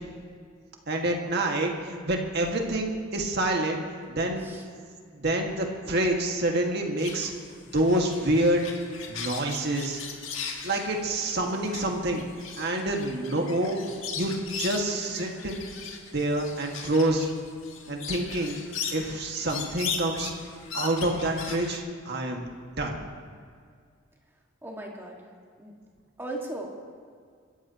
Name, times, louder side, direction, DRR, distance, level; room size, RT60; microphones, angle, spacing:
voice 1, 0.9-4.5 5.1-7.3 7.7-8.6 9.1-10.0 10.6-12.2 12.6-13.8 14.2-15.6 16.1-17.3 17.9-18.6 18.9-20.3 20.7-22.5 22.8-23.0, right 1 dB, 55° right, 1 dB, 1.9 m, -27 dB
sound 1, 7.0-21.8, left 6 dB, 70° left, 1.9 m, -38 dB
voice 2, 24.6-25.2 25.6-25.7 26.2-26.9, right 1 dB, 10° right, -1 dB, 2.0 m, -37 dB
28.5 x 14.0 x 3.0 m, 2.1 s
head